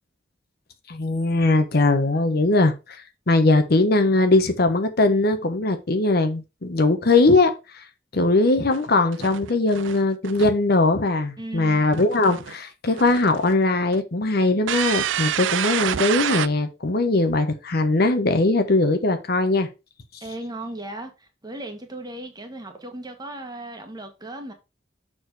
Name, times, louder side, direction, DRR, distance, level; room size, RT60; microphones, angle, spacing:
voice 1, 0.9-3.0 3.3-7.8 8.1-19.7, left 2 dB, 55° left, 1.0 m, -20 dB
sound 1, 8.7-8.8 9.1-10.5 11.9-12.6 12.9-13.5 13.9-14.0 14.7-16.5, right 10 dB, 90° right, 0.4 m, -27 dB
voice 2, 11.4-11.8 20.2-24.5, right 1 dB, 20° right, 1.4 m, -36 dB
6.7 x 4.4 x 4.7 m
head